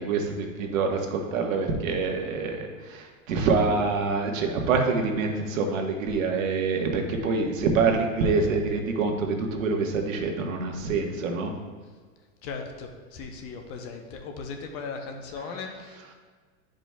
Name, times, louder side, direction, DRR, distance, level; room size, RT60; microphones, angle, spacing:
voice 1, 0.0-11.5, right 4 dB, 80° right, 2 dB, 1.2 m, -26 dB
voice 2, 12.4-16.1, left 4 dB, 35° left, 4 dB, 0.8 m, -38 dB
11.0 x 5.1 x 2.2 m, 1.5 s
supercardioid pair, 145°, 39 cm